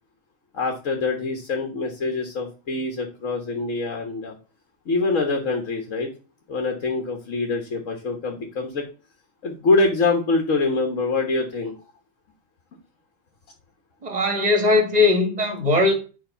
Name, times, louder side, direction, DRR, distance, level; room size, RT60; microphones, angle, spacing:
voice 1, 0.5-4.4 4.9-6.1 6.5-8.8 9.4-11.8, left 3 dB, 80° left, 1.7 m, -24 dB
voice 2, 14.0-15.9, left 3 dB, 30° right, 1.7 m, -19 dB
9.5 x 3.6 x 5.5 m
omnidirectional pair, 1.3 m